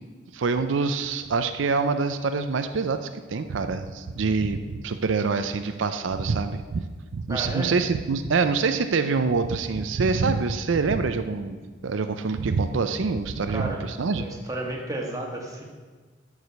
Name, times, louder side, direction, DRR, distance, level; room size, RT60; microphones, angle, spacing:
voice 1, 0.3-6.8 7.1-11.5 11.8-14.2, right 4 dB, 80° right, 9 dB, 0.5 m, -25 dB
voice 2, 7.3-7.7 13.5-13.8 14.1-15.6, right 1 dB, 15° right, -1 dB, 1.6 m, -32 dB
12.0 x 4.9 x 6.9 m, 1.4 s
head